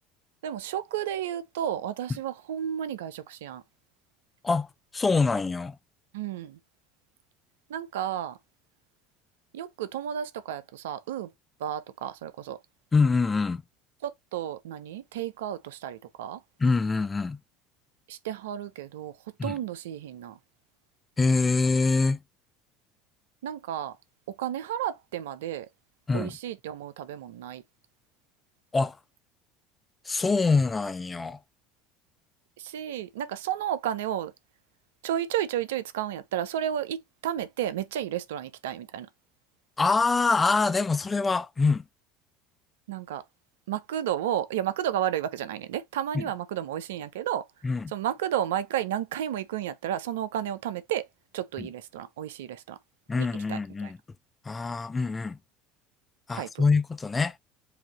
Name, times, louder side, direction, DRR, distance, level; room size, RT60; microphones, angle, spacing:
voice 1, 0.4-3.6 6.1-6.6 7.7-8.4 9.5-11.3 11.6-12.6 14.0-16.4 18.1-19.2 19.4-20.4 23.4-24.0 24.3-25.7 26.1-27.6 32.6-34.3 35.0-39.1 42.9-43.2 43.7-47.4 47.9-51.0 51.3-52.8 53.2-53.9 56.3-56.6, right 10 dB, 75° right, 0.5 m, -32 dB
voice 2, 4.9-5.8 12.9-13.6 16.6-17.4 19.4-19.5 21.2-22.2 26.1-26.3 28.7-29.0 30.1-31.4 39.8-41.8 46.1-46.3 47.6-47.9 51.6-51.7 53.1-54.0 54.5-55.4 56.3-57.4, left 4 dB, 20° left, 0.4 m, -25 dB
4.9 x 2.6 x 3.0 m
hypercardioid pair, 70°, 0 cm